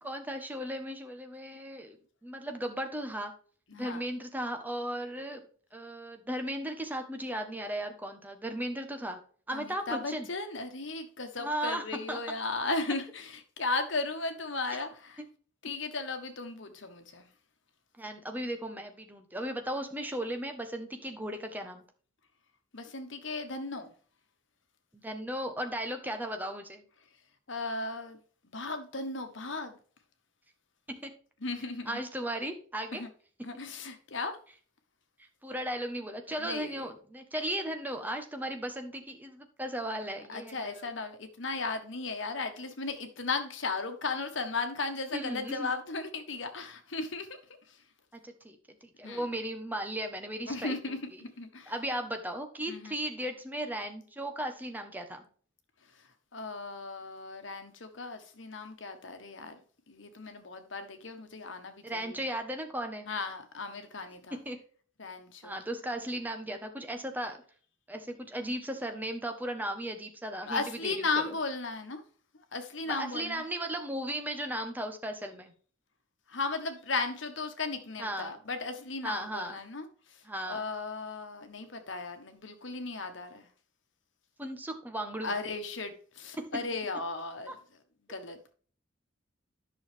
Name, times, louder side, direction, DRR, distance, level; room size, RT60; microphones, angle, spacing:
voice 1, 0.0-2.0 2.2-3.3 3.7-5.4 5.7-9.2 9.5-10.3 11.4-12.2 18.0-21.8 24.9-26.9 30.9-31.1 31.9-33.0 35.2-40.9 45.1-45.7 48.1-51.0 51.7-55.3 61.8-63.1 64.3-64.6 65.4-67.4 67.9-71.4 72.9-75.5 78.0-78.3 79.0-79.6 80.2-80.7 84.4-85.3 86.4-86.6 87.5-87.6, right 1 dB, 10° right, 1.2 m, -36 dB
voice 2, 3.7-4.0 9.5-15.2 15.6-17.3 22.7-23.9 27.5-28.2 28.5-29.8 31.4-32.0 32.9-33.1 33.4-34.4 36.3-36.9 40.3-47.4 47.7-47.8 49.0-49.3 50.5-51.7 52.7-53.0 55.9-56.0 56.3-59.6 59.9-62.3 63.1-64.4 65.0-65.6 70.4-72.0 72.3-73.4 76.3-83.5 85.2-87.6 88.1-88.5, left 3 dB, 65° left, 1.4 m, -36 dB
10.5 x 6.4 x 3.6 m
head